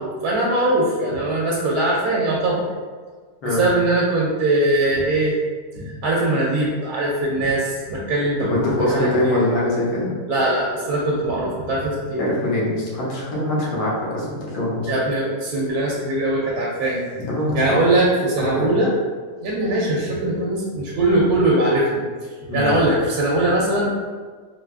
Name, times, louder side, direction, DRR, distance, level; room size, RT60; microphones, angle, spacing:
voice 1, 0.0-2.7 3.4-5.3 5.9-9.4 10.3-12.2 14.9-17.0 17.5-18.9 19.4-22.0 22.5-23.9, right 1 dB, 80° right, -4 dB, 1.1 m, -21 dB
voice 2, 8.5-10.1 12.2-14.9 17.1-17.8 18.4-18.7 22.5-22.7, left 1 dB, 75° left, -6 dB, 1.4 m, -23 dB
4.2 x 2.3 x 2.4 m, 1.5 s
omnidirectional pair, 1.6 m